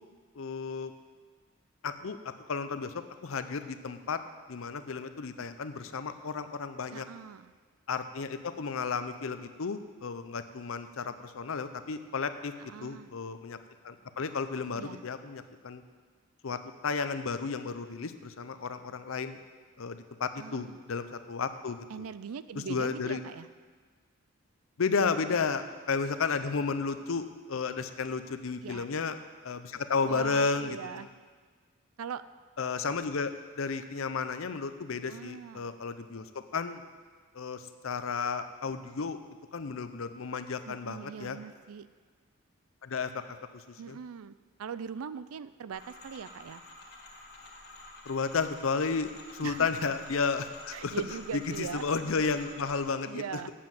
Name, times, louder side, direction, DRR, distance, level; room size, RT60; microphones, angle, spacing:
voice 1, 0.4-0.9 1.8-2.9 3.2-4.2 4.5-7.1 7.9-12.5 12.8-13.6 13.8-15.8 16.4-19.4 19.8-22.1 22.5-23.2 24.8-29.2 29.4-31.1 32.6-36.3 36.5-36.8 37.3-39.2 39.5-41.4 42.8-43.2 43.5-44.0 48.1-51.0 51.3-53.2, left 5 dB, 75° left, 10 dB, 0.6 m, -33 dB
voice 2, 6.9-7.5 12.6-13.1 14.7-15.0 20.4-20.8 21.9-23.5 25.3-25.5 28.6-28.9 30.0-31.1 32.0-32.2 35.1-35.8 40.6-41.9 43.8-46.6 49.4-49.7 50.7-51.9 53.0-53.5, right 7 dB, 90° right, 15 dB, 0.4 m, -41 dB
sound 1, 45.7-52.8, left 2 dB, 50° left, 1.8 m, -49 dB
8.5 x 7.4 x 7.4 m, 1.5 s
head